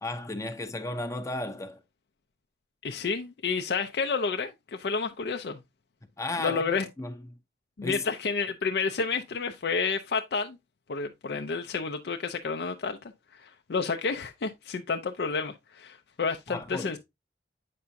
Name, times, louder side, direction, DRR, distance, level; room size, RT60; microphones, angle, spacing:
voice 1, 0.0-1.8 6.2-6.6 7.0-7.4 7.8-8.0 16.5-17.0, left 2 dB, 15° left, 0.6 m, -34 dB
voice 2, 2.8-5.6 6.4-6.9 7.8-10.6 10.9-13.0 13.3-17.0, left 5 dB, 60° left, 0.5 m, -30 dB
8.4 x 5.7 x 2.5 m
head